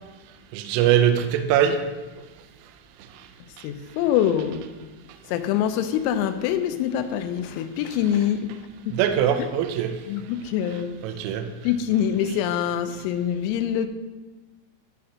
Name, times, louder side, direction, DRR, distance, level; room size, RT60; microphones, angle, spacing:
voice 1, 0.5-1.8 8.9-9.9 11.0-11.4, right 9 dB, 85° right, 7 dB, 3.0 m, -21 dB
voice 2, 3.6-4.6 5.3-8.5 8.9-9.0 10.1-10.9 11.6-13.9, left 10 dB, 90° left, 9 dB, 3.3 m, -24 dB
12.5 x 6.5 x 2.8 m, 1.3 s
omnidirectional pair, 5.9 m